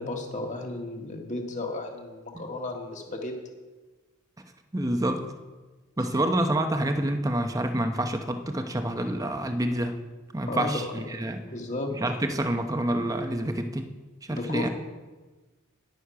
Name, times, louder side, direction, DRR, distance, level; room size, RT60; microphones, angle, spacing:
voice 1, 0.0-3.3 10.5-11.0 11.5-11.9 14.3-14.7, left 2 dB, 35° left, 2 dB, 1.7 m, -33 dB
voice 2, 4.7-5.3 6.0-10.0 10.3-11.4 12.0-13.9 14.2-14.7, right 1 dB, 15° right, 6 dB, 0.8 m, -27 dB
10.5 x 9.5 x 5.7 m, 1.3 s
head